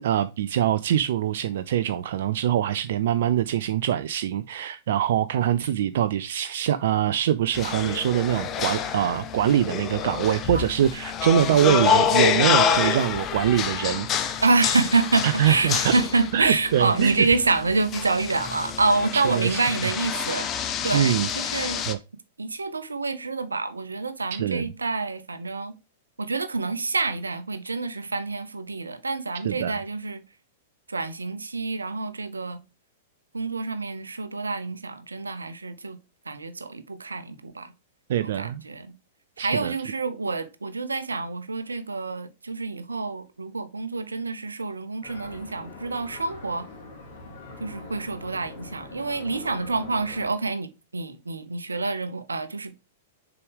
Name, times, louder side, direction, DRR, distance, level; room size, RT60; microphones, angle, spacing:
voice 1, 0.0-14.4 15.2-15.9 16.3-17.3 19.1-19.9 20.9-21.3 21.9-22.0 24.3-24.7 29.4-29.8 38.1-38.6 39.4-39.7, right 10 dB, 60° right, 0.3 m, -24 dB
sound 1, 7.5-21.9, left 8 dB, 30° left, 0.9 m, -27 dB
voice 2, 14.4-20.5 20.8-21.8 22.4-25.7 26.2-30.2 30.9-32.6 33.3-36.0 36.3-37.7 38.2-38.9 39.4-46.7 47.6-52.8, right 3 dB, 80° right, 0.7 m, -27 dB
sound 2, 45.0-50.3, left 3 dB, 60° left, 2.7 m, -43 dB
6.8 x 4.8 x 3.3 m
figure-of-eight pair, 100°, 0 cm